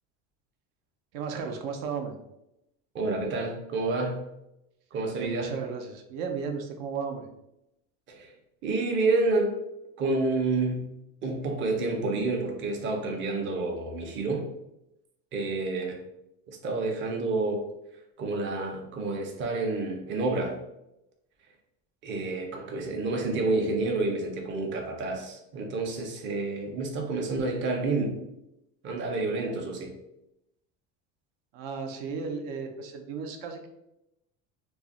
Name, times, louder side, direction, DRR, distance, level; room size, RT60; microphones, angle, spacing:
voice 1, 1.1-2.2 5.1-7.3 31.5-33.7, right 5 dB, 75° right, 4 dB, 0.6 m, -34 dB
voice 2, 2.9-4.2 4.9-5.5 8.1-8.3 8.6-9.6 10.0-10.9 11.2-14.5 15.3-16.0 16.5-17.7 18.2-20.6 22.0-28.2 28.8-29.9, right 3 dB, 30° right, 2 dB, 0.5 m, -29 dB
2.4 x 2.0 x 3.6 m, 0.86 s
cardioid pair, 125°, 39 cm